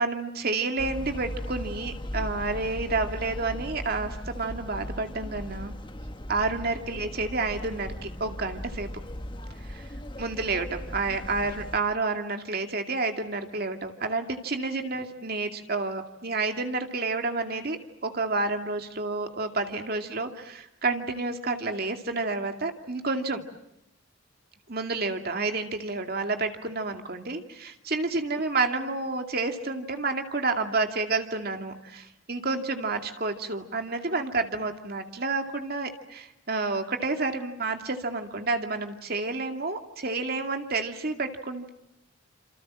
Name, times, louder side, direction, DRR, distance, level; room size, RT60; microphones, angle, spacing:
voice 1, 0.0-5.7 6.3-8.9 9.6-9.8 10.2-23.4 24.7-41.7, right 3 dB, 50° right, 5 dB, 2.4 m, -30 dB
sound 1, 0.8-11.8, equal, 25° left, 1.4 m, -38 dB
28.5 x 27.5 x 7.5 m, 0.88 s
head